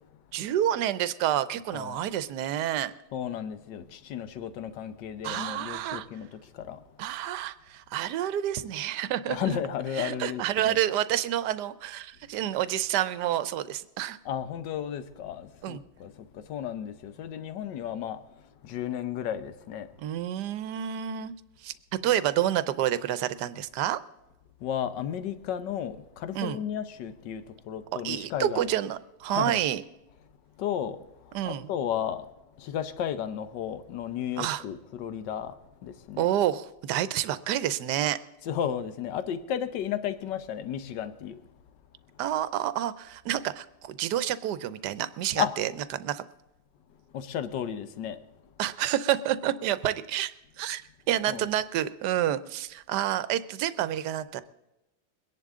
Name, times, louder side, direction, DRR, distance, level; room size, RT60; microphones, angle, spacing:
voice 1, 0.3-2.9 5.2-6.1 7.0-9.6 9.9-14.2 15.6-15.8 20.0-21.3 21.6-21.7 22.0-24.0 26.3-26.6 27.9-29.8 31.3-31.7 34.4-34.6 36.2-38.2 42.2-46.2 48.6-50.8 51.1-54.4, right 11 dB, 75° right, 1.2 m, -29 dB
voice 2, 1.7-2.0 3.1-6.8 9.3-10.8 14.2-19.9 24.6-28.7 29.3-29.6 30.6-32.3 32.6-36.3 38.4-41.4 45.3-45.5 47.1-48.2 51.3-51.5, left 9 dB, 75° left, 1.5 m, -34 dB
22.5 x 10.5 x 3.7 m
omnidirectional pair, 2.0 m